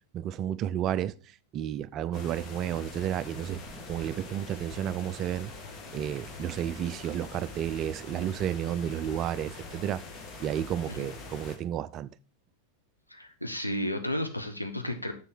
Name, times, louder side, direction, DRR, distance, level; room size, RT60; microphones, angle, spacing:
voice 1, 0.1-1.1 1.5-3.6 3.9-5.5 5.9-10.0 10.4-12.1, right 10 dB, 35° right, 0.4 m, -32 dB
sound 1, 2.1-11.6, left 3 dB, 35° left, 1.5 m, -44 dB
sound 2, 3.2-4.5 6.2-6.5 7.1-7.8, right 3 dB, 15° right, 2.7 m, -50 dB
voice 2, 13.1-15.1, left 1 dB, 90° left, 1.2 m, -33 dB
7.4 x 6.3 x 4.5 m
figure-of-eight pair, 90°, 0 cm